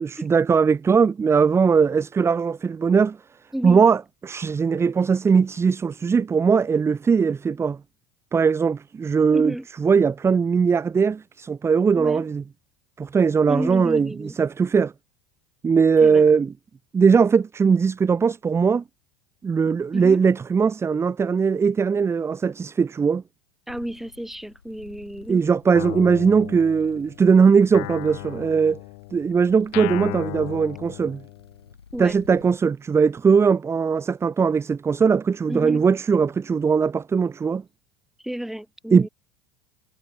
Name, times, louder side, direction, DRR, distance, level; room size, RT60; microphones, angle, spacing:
voice 1, 0.0-3.2 3.6-7.8 8.3-9.5 9.8-12.4 13.0-14.9 15.6-16.5 16.9-18.8 19.4-23.2 25.3-28.8 29.1-31.2 32.0-37.6 38.9-39.1, right 5 dB, 20° right, 0.9 m, -20 dB
voice 2, 9.3-9.7 11.9-12.2 13.5-14.4 16.0-16.3 19.9-20.2 23.7-25.4 31.9-32.2 35.5-35.8 38.2-39.1, equal, ahead, 4.6 m, -31 dB
sound 1, 23.7-32.6, left 6 dB, 85° left, 3.9 m, -50 dB
Guitar, 25.7-27.2 27.7-31.6, left 40 dB or more, 60° left, 4.5 m, -35 dB
figure-of-eight pair, 75°, 13 cm